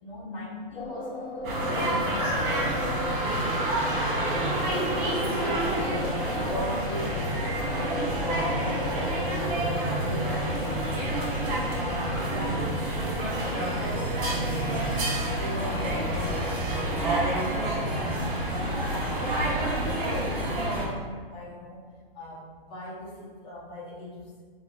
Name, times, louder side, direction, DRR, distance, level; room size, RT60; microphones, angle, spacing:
voice 1, 0.0-4.1 4.7-9.7 10.0-11.4 11.7-12.7 13.0-14.4 15.2-18.2 18.5-21.8 22.1-24.4, left 1 dB, 15° left, -3 dB, 0.5 m, -39 dB
sound 1, 0.7-17.4, left 2 dB, 90° left, 0.7 m, -37 dB
sound 2, 1.4-20.9, right 1 dB, 40° right, 1.0 m, -28 dB
5.5 x 2.2 x 2.4 m, 1.5 s
hypercardioid pair, 155°, 30 cm